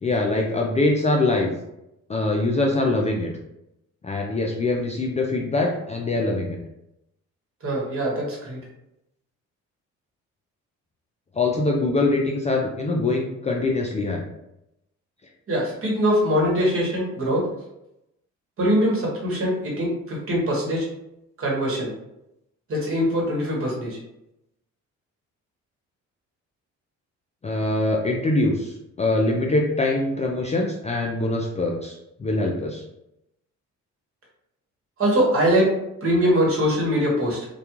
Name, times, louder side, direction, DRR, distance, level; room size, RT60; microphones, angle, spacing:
voice 1, 0.0-1.5 2.1-3.3 4.0-6.6 11.4-14.2 27.4-32.8, left 2 dB, 25° left, 0 dB, 0.3 m, -23 dB
voice 2, 7.6-8.6 15.5-17.5 18.6-20.9 21.4-21.9 22.7-24.0 35.0-35.7 36.0-37.5, equal, 45° right, -3 dB, 1.1 m, -22 dB
2.3 x 2.2 x 2.9 m, 0.86 s
cardioid pair, 90°, 30 cm